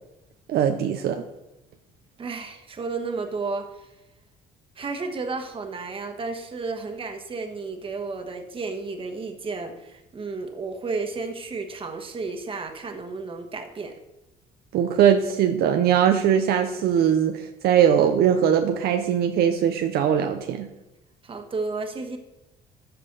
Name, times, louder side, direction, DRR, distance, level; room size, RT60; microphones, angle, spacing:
voice 1, 0.5-1.2 14.7-20.7, right 9 dB, 70° right, 6 dB, 0.7 m, -21 dB
voice 2, 2.2-3.9 4.7-14.0 21.2-22.2, right 4 dB, 30° right, 5 dB, 1.4 m, -32 dB
13.5 x 5.5 x 4.0 m, 0.95 s
cardioid pair, 110°, 17 cm